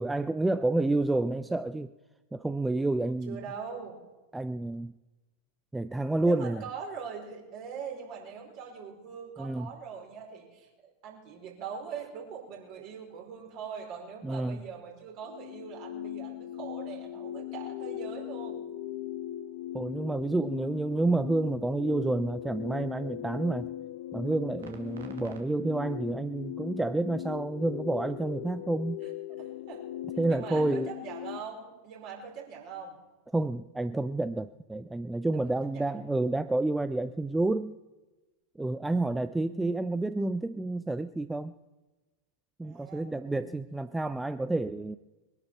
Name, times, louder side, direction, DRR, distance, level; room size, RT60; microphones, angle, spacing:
voice 1, 0.0-1.9 2.3-3.4 4.3-4.9 5.7-6.6 9.4-9.7 14.2-14.6 19.7-23.7 24.1-29.0 30.2-30.9 33.3-37.8 38.6-41.5 42.6-45.0, right 2 dB, 5° right, 0.4 m, -29 dB
voice 2, 3.2-4.0 6.2-18.6 29.0-29.1 29.4-29.9 30.3-33.0 35.3-36.0 42.6-43.6, right 6 dB, 40° right, 4.9 m, -42 dB
sound 1, 15.2-31.4, left 12 dB, 50° left, 1.0 m, -39 dB
sound 2, 19.9-25.4, right 6 dB, 65° right, 2.0 m, -56 dB
22.0 x 10.5 x 5.9 m
figure-of-eight pair, 90°, 0 cm